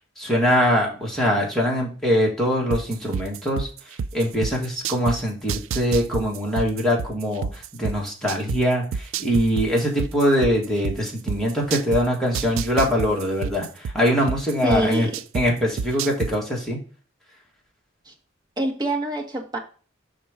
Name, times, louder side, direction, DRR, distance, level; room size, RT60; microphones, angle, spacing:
voice 1, 0.2-3.7 4.1-7.5 7.8-8.8 9.2-13.7 13.9-15.1 15.3-16.8, equal, ahead, -3 dB, 1.6 m, -22 dB
sound 1, 2.7-5.2 5.5-8.6 8.9-12.0 12.3-15.4 15.8-16.3, right 6 dB, 75° right, 0.3 m, -27 dB
voice 2, 14.6-15.1 18.0-18.1 18.6-19.6, right 1 dB, 20° right, 0 dB, 1.2 m, -25 dB
5.4 x 3.8 x 4.8 m, 0.39 s
head